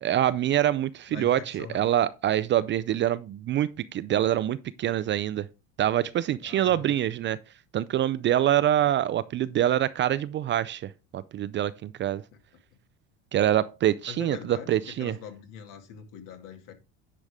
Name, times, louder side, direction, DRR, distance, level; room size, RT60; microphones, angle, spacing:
voice 1, 0.0-5.5 5.8-7.4 7.7-12.2 13.3-15.1, right 11 dB, 35° right, 0.4 m, -25 dB
voice 2, 1.1-1.9 6.4-6.9 14.1-16.7, left 7 dB, 60° left, 2.3 m, -43 dB
10.0 x 5.1 x 3.5 m
supercardioid pair, 105°, 35 cm